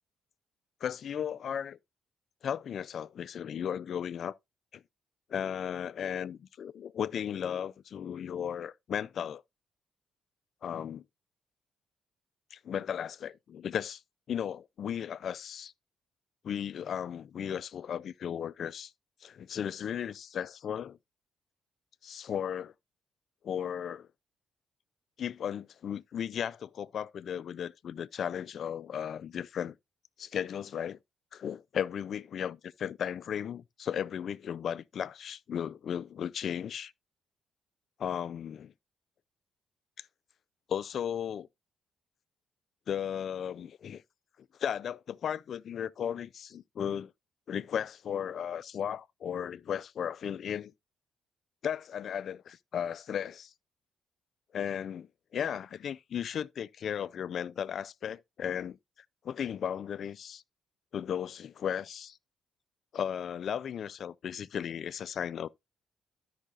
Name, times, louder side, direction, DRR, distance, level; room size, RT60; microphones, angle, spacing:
voice 1, 0.8-1.8 2.4-4.3 4.7-4.8 5.3-9.4 10.6-11.0 12.5-14.0 14.3-15.7 16.4-18.9 19.2-21.0 22.0-22.7 23.4-24.1 25.2-29.8 30.2-31.0 31.3-36.9 38.0-38.7 40.0-40.1 40.7-41.5 42.9-44.0 44.6-47.1 47.5-50.7 51.6-53.5 54.5-58.8 59.2-60.4 60.9-62.2 62.9-65.5, left 8 dB, 60° left, 0.3 m, -35 dB
13.5 x 5.5 x 2.4 m
cardioid pair, 90°, 0 cm